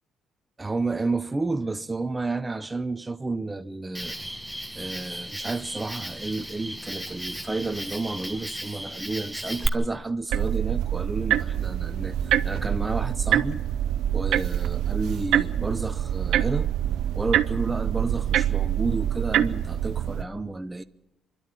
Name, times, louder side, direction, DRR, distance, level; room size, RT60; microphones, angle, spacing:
voice 1, 0.6-4.2 4.8-13.6 14.1-16.7 17.2-20.8, right 3 dB, 20° right, 0.7 m, -31 dB
Cricket, 3.9-9.7, right 1 dB, ahead, 1.4 m, -35 dB
sound 1, 10.3-20.2, right 11 dB, 85° right, 0.7 m, -25 dB
26.5 x 11.5 x 8.9 m
cardioid pair, 90°, 0 cm